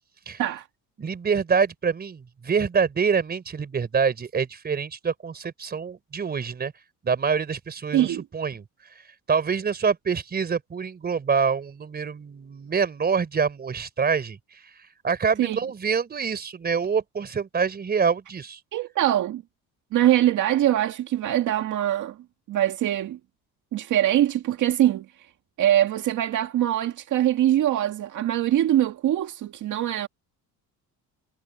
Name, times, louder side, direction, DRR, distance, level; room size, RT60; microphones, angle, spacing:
voice 1, 1.0-6.7 7.0-8.6 9.3-14.6 15.0-18.6, right 6 dB, 25° right, 4.2 m, -26 dB
voice 2, 7.9-8.2 15.4-15.6 18.7-19.4 19.9-22.2 22.5-23.2 23.7-25.1 25.6-30.1, right 12 dB, 60° right, 2.0 m, -23 dB
cardioid pair, 140°, 35 cm